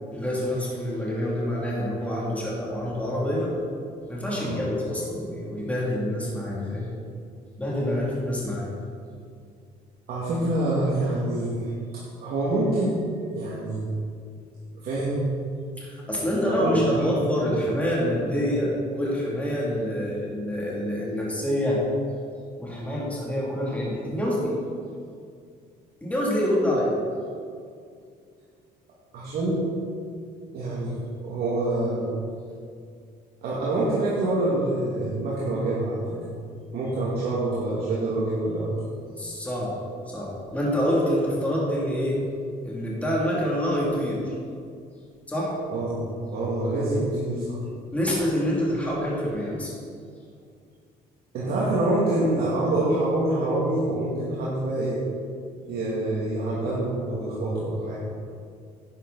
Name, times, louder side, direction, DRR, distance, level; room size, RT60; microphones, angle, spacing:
voice 1, 0.1-3.5 4.1-6.9 7.6-8.7 15.8-21.8 22.6-24.6 26.0-26.9 39.2-39.8 40.1-42.2 42.6-44.3 45.3-45.6 47.9-49.7, equal, 10° left, -5 dB, 2.9 m, -26 dB
voice 2, 10.1-13.9 14.8-15.3 16.5-17.3 29.1-29.6 30.5-32.1 33.4-36.2 36.7-38.7 45.7-47.6 51.3-55.0 55.6-58.0, right 1 dB, 65° right, -7 dB, 2.4 m, -26 dB
11.0 x 9.3 x 4.2 m, 2.3 s
cardioid pair, 110°, 17 cm